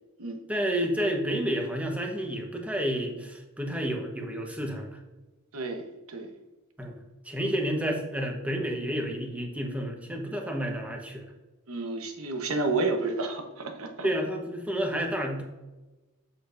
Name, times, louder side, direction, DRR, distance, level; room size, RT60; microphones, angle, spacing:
voice 1, 0.5-4.9 6.8-6.9 7.2-11.2 14.0-15.4, equal, 5° right, 2 dB, 1.0 m, -30 dB
voice 2, 5.5-6.3 11.7-14.1, right 3 dB, 75° right, 5 dB, 1.0 m, -30 dB
7.6 x 6.6 x 2.5 m, 1.1 s
head